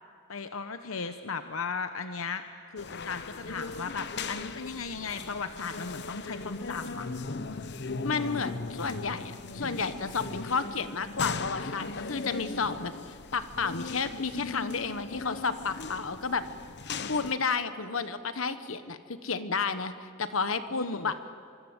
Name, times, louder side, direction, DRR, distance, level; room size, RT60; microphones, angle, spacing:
voice 1, 0.3-2.4 2.7-7.1 20.7-21.1, left 5 dB, 90° left, 9 dB, 0.9 m, -36 dB
sound 1, 2.8-17.4, left 4 dB, 55° left, 1.0 m, -38 dB
voice 2, 8.0-16.4 16.9-21.2, left 5 dB, 75° left, 11 dB, 1.3 m, -32 dB
24.5 x 24.0 x 8.1 m, 2.4 s
head